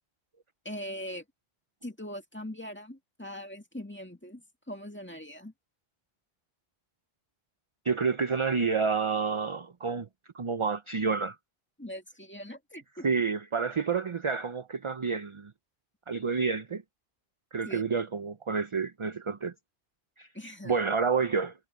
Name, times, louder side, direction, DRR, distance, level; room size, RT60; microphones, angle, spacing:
voice 1, 0.6-1.2 1.8-5.5 11.8-13.1 17.6-17.8 20.3-20.8, equal, 10° left, 2.0 m, -41 dB
voice 2, 7.8-10.1 10.3-11.4 13.0-15.5 16.1-16.8 17.5-19.5 20.2-20.3 20.6-21.5, right 5 dB, 35° right, 0.6 m, -29 dB
omnidirectional pair, 1.1 m